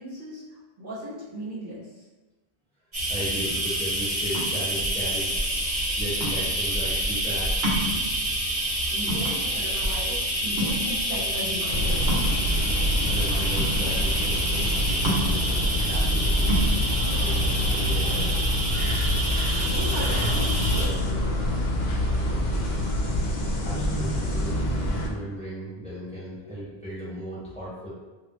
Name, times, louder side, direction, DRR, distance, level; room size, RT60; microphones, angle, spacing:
voice 1, 0.0-2.0 8.9-12.2 19.6-21.7, equal, 55° right, -8 dB, 1.1 m, -37 dB
sound 1, 2.9-20.9, right 1 dB, 35° right, 1.2 m, -28 dB
voice 2, 3.1-5.4 6.0-7.8 13.1-16.5 17.2-18.3 23.6-24.6 25.0-27.9, right 1 dB, 5° left, -10 dB, 1.1 m, -36 dB
sound 2, 4.3-18.5, equal, 80° right, 0.9 m, -32 dB
sound 3, 11.7-25.1, equal, 80° left, 0.8 m, -26 dB
3.1 x 2.5 x 3.0 m, 1.2 s
omnidirectional pair, 1.0 m